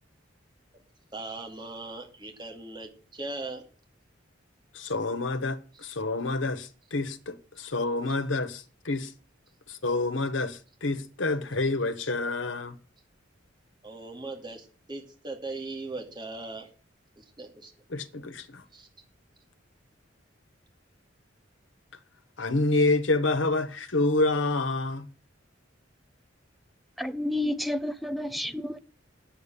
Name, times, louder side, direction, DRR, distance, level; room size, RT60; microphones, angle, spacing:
voice 1, 1.1-3.6 13.8-16.7 17.2-17.7 18.7-18.9, right 2 dB, 25° right, 2.4 m, -39 dB
voice 2, 4.7-9.1 9.7-12.8 17.9-18.6 22.4-25.1, left 2 dB, 80° left, 1.3 m, -28 dB
voice 3, 27.0-28.8, left 1 dB, ahead, 0.7 m, -30 dB
8.7 x 7.7 x 8.9 m
head